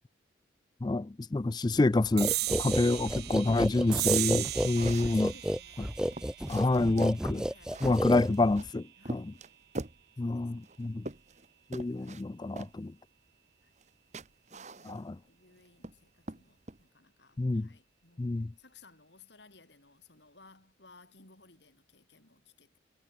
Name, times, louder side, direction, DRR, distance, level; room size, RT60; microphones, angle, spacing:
voice 1, 0.8-5.3 6.5-7.5 7.8-9.3 10.2-11.1 11.7-12.9 14.9-15.2 17.4-17.7 18.2-18.5, left 2 dB, 20° left, 0.3 m, -28 dB
sound 1, 2.2-8.7, equal, 5° right, 1.3 m, -32 dB
sound 2, 2.2-9.0, right 17 dB, 55° right, 0.6 m, -36 dB
sound 3, 4.0-5.2 5.7-5.8 6.1-7.2 7.6-8.7 9.1-10.0 10.6-11.5 11.7-12.2 12.6-12.8 13.8-13.9 14.1-15.2 15.6-16.0 16.3-16.8, right 2 dB, 35° right, 1.3 m, -43 dB
voice 2, 5.0-6.0 6.4-8.0 9.0-9.2 10.2-10.4 12.0-12.1 13.6-13.7 14.5-22.8, left 4 dB, 65° left, 7.3 m, -60 dB
head